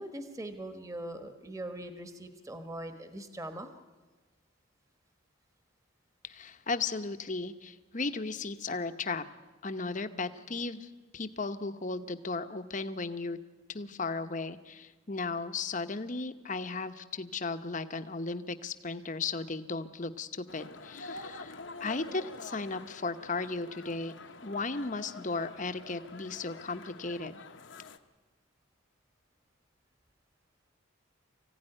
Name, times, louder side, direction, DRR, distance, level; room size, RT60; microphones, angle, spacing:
voice 1, 0.0-3.7 25.2-25.4, right 1 dB, 15° right, 7 dB, 1.4 m, -41 dB
voice 2, 6.2-9.2 9.6-13.4 13.7-24.2 24.4-27.4, left 3 dB, 40° left, 9 dB, 0.9 m, -36 dB
sound 1, 20.5-28.0, left 3 dB, 60° left, 1.0 m, -47 dB
24.5 x 16.0 x 10.0 m, 1.3 s
head